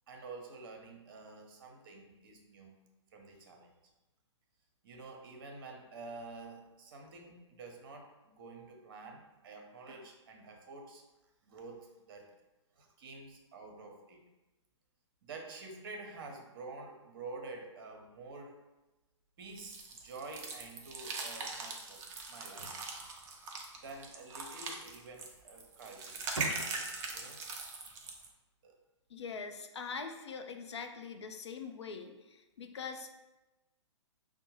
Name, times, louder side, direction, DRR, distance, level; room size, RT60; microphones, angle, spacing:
voice 1, 0.1-2.7 3.1-3.7 4.8-11.0 11.5-12.4 12.8-14.3 15.2-18.6 19.4-22.8 23.8-27.4 28.6-28.8, right 3 dB, 45° right, 3 dB, 0.8 m, -49 dB
sound 1, 19.6-28.3, right 3 dB, 20° right, 0.4 m, -41 dB
sound 2, 22.5-23.9 25.3-25.6 26.0-27.2, right 3 dB, 85° right, 0.5 m, -45 dB
voice 2, 29.1-33.2, left 5 dB, 65° left, 6 dB, 0.5 m, -43 dB
5.2 x 2.1 x 3.0 m, 1.0 s
figure-of-eight pair, 120°, 16 cm